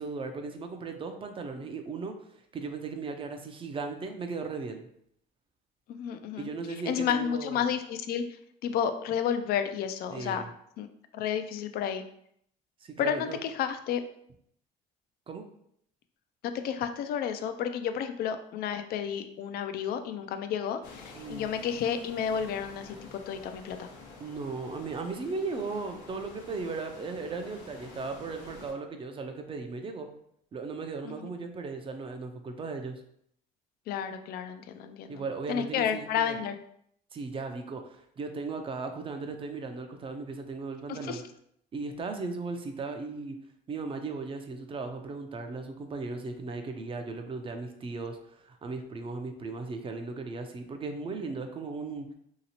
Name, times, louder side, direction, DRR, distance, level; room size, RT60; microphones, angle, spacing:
voice 1, 0.0-2.1 2.5-4.9 6.4-7.6 10.1-10.5 12.8-13.4 15.3-15.4 21.1-21.5 24.2-30.1 30.5-33.0 35.1-36.4 37.1-41.2 41.7-43.4 43.7-52.1, right 4 dB, 30° right, 5 dB, 0.5 m, -37 dB
voice 2, 5.9-8.2 8.6-10.4 10.8-10.9 11.1-12.0 13.0-14.0 16.4-23.9 31.0-31.3 33.9-35.2 35.5-36.6 40.9-41.2, left 8 dB, 65° left, 9 dB, 0.4 m, -31 dB
sound 1, 20.8-28.7, left 3 dB, 85° left, 0.8 m, -49 dB
2.9 x 2.8 x 2.8 m, 0.70 s
cardioid pair, 110°, 17 cm